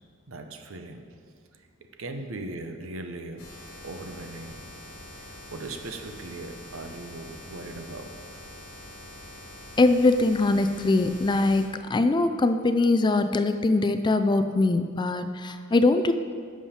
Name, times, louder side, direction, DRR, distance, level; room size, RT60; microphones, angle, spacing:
voice 1, 0.3-1.0 2.0-3.5 3.8-4.6 5.2-8.4, right 2 dB, 70° right, 6 dB, 0.8 m, -39 dB
sound 1, 3.4-11.6, left 1 dB, 55° left, 2.2 m, -44 dB
voice 2, 9.8-16.1, left 2 dB, 20° left, 9 dB, 0.3 m, -22 dB
11.0 x 7.2 x 4.3 m, 2.1 s
head